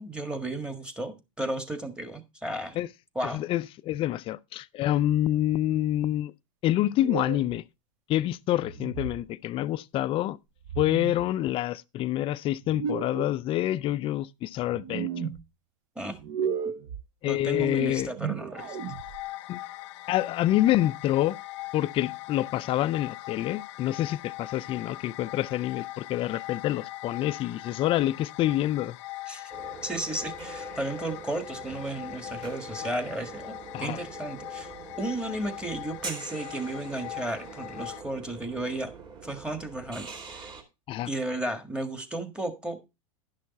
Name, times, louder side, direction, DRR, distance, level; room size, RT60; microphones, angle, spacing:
voice 1, 0.0-2.8 3.1-3.4 15.9-16.2 17.3-18.8 29.3-29.5 29.8-38.9 39.2-40.5 41.1-42.8, right 1 dB, 5° right, 1.6 m, -34 dB
voice 2, 3.3-6.3 6.6-7.6 8.1-10.4 10.8-15.1 17.2-18.1 19.5-19.6 20.1-21.4 21.7-29.0 33.7-34.0 40.9-41.1, left 14 dB, 30° left, 0.5 m, -27 dB
sound 1, 6.9-7.5 8.6-9.2 10.6-11.3 12.6-13.3 14.6-15.4 16.1-17.0 18.0-19.2, right 7 dB, 50° right, 1.2 m, -34 dB
sound 2, 18.6-38.0, left 17 dB, 60° left, 0.8 m, -41 dB
sound 3, 29.5-40.6, right 4 dB, 25° right, 2.5 m, -43 dB
11.5 x 6.4 x 4.1 m
hypercardioid pair, 120°, 18 cm